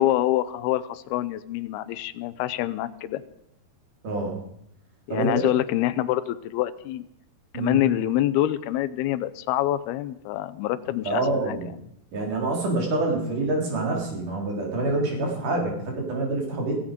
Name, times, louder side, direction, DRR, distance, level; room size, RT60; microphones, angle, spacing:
voice 1, 0.0-3.2 5.1-7.1 7.5-11.6, left 13 dB, 85° left, 13 dB, 2.7 m, -26 dB
voice 2, 4.0-4.4 5.1-5.4 7.5-7.8 11.0-11.7 12.1-16.8, right 2 dB, 55° right, 0 dB, 5.2 m, -26 dB
17.0 x 16.0 x 5.2 m, 0.75 s
omnidirectional pair, 4.4 m